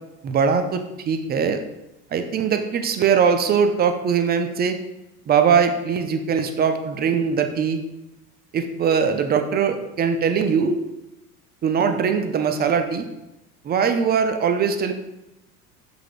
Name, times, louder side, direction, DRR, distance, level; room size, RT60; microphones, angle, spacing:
voice 1, 0.2-1.6 2.1-4.8 5.3-7.8 8.5-10.8 11.6-13.1 13.6-14.9, right 6 dB, 25° right, 7 dB, 0.4 m, -21 dB
5.8 x 3.3 x 2.5 m, 0.96 s
hypercardioid pair, 75°, 44 cm